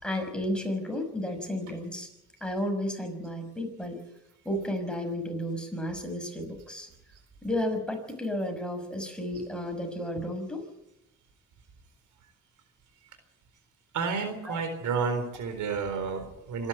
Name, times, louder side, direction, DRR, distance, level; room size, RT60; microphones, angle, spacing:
voice 1, 0.0-2.1 2.4-4.0 4.4-6.9 7.4-10.6 14.5-14.6, left 1 dB, 5° left, 4 dB, 6.0 m, -32 dB
voice 2, 13.9-16.7, right 5 dB, 75° right, 7 dB, 4.2 m, -30 dB
26.0 x 11.5 x 9.0 m, 0.90 s
cardioid pair, 90°, 30 cm